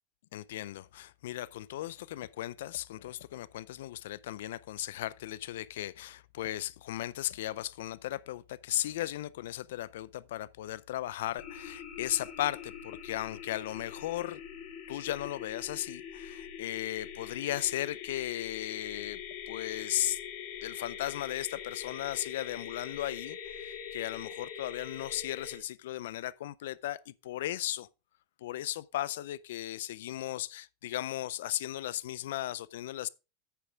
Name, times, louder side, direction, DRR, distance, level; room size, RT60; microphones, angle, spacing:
voice 1, 0.3-14.4 14.9-19.2 19.5-20.2 20.6-27.9 28.4-33.1, left 14 dB, 80° left, 0.4 m, -36 dB
sound 1, 11.4-25.6, left 8 dB, 55° left, 2.0 m, -43 dB
9.3 x 6.7 x 3.5 m
supercardioid pair, 125°, 0 cm